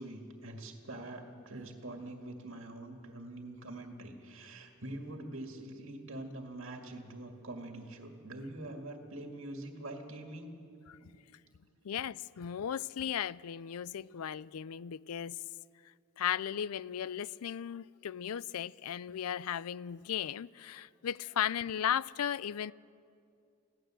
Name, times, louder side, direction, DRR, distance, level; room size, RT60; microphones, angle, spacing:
voice 1, 0.0-10.5, right 1 dB, 60° right, 2.0 m, -44 dB
voice 2, 11.8-15.4 16.2-22.7, left 9 dB, 90° left, 0.4 m, -36 dB
25.0 x 16.5 x 7.7 m
head